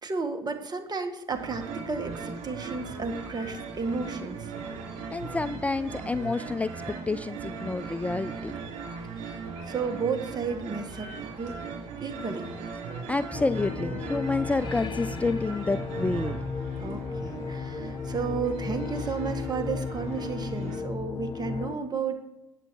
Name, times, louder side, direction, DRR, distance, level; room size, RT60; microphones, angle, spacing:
voice 1, 0.0-4.5 9.1-11.5 12.0-12.5 16.8-22.3, right 5 dB, 35° right, 6 dB, 1.6 m, -33 dB
sound 1, 1.3-20.8, right 5 dB, 70° right, 3.5 m, -39 dB
voice 2, 5.1-8.5 13.1-16.4, left 3 dB, 10° left, 13 dB, 0.3 m, -29 dB
sound 2, 13.3-21.8, left 5 dB, 40° left, 0.8 m, -35 dB
9.0 x 8.1 x 4.5 m, 0.96 s
hypercardioid pair, 60°, 12 cm